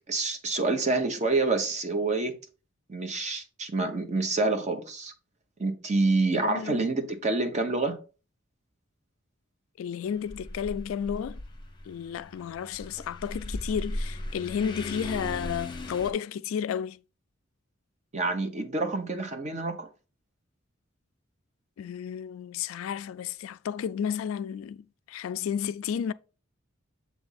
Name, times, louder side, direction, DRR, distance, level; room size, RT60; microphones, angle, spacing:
voice 1, 0.1-2.3 2.9-5.1 5.6-8.0 18.1-19.9, right 3 dB, 35° right, 1.0 m, -27 dB
voice 2, 6.4-6.8 9.8-11.4 11.9-17.0 21.8-26.1, left 8 dB, 80° left, 0.3 m, -32 dB
sound 1, 10.1-16.1, left 1 dB, 25° left, 0.8 m, -38 dB
7.2 x 3.5 x 4.0 m
head